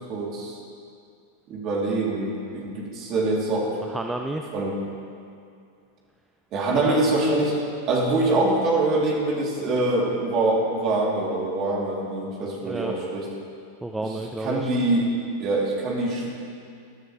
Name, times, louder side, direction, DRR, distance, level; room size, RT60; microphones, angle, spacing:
voice 1, 0.1-0.6 1.5-3.7 4.5-4.8 6.5-7.6 7.9-13.2 14.4-15.1 15.4-16.3, right 2 dB, 35° right, -3 dB, 3.4 m, -24 dB
voice 2, 3.8-4.4 6.8-7.0 12.6-12.9 13.8-14.7, right 2 dB, 5° right, 3 dB, 0.6 m, -31 dB
19.5 x 12.5 x 3.4 m, 2.4 s
figure-of-eight pair, 90°, 0 cm